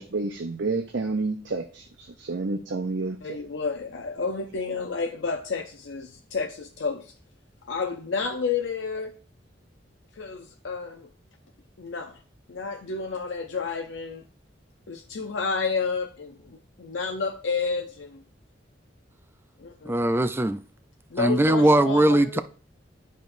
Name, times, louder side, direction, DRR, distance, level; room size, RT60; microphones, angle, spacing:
voice 1, 0.0-3.4, right 3 dB, 75° right, 0.6 m, -30 dB
voice 2, 3.2-7.1 7.7-9.1 10.2-11.1 11.8-12.2 12.5-14.2 14.9-18.2 19.6-20.0 21.1-22.4, left 4 dB, 80° left, 0.6 m, -30 dB
voice 3, 19.9-20.6 21.2-22.4, right 1 dB, 10° right, 0.4 m, -20 dB
11.0 x 5.1 x 2.6 m
head